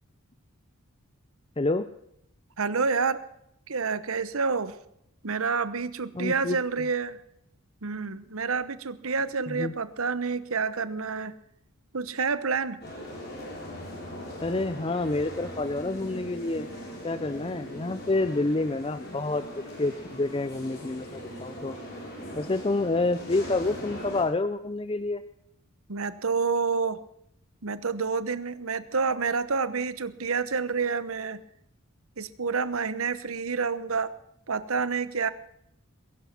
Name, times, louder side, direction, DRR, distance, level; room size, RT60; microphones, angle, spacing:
voice 1, 1.6-1.9 6.1-6.6 9.5-9.7 14.4-16.7 17.0-21.8 22.3-25.2, left 2 dB, 25° left, 12 dB, 0.5 m, -28 dB
voice 2, 2.6-3.2 3.7-4.8 5.2-7.2 7.8-11.3 11.9-12.8 25.9-27.0 27.6-31.4 32.2-34.1 34.5-35.3, right 5 dB, 70° right, 15 dB, 1.0 m, -28 dB
sound 1, 12.8-24.2, equal, 50° left, 6.9 m, -40 dB
21.0 x 11.5 x 6.0 m, 0.76 s
head